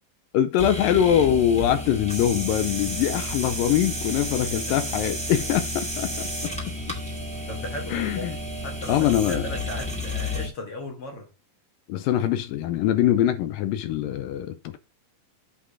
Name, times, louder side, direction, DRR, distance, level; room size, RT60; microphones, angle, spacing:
voice 1, 0.3-6.5 7.9-8.4 8.9-9.5 11.9-14.8, left 10 dB, 80° left, 2.3 m, -23 dB
sound 1, 0.6-10.5, left 1 dB, 5° left, 1.6 m, -31 dB
voice 2, 7.3-8.3 8.6-11.3, left 2 dB, 50° left, 2.1 m, -36 dB
8.3 x 3.8 x 6.1 m
omnidirectional pair, 4.2 m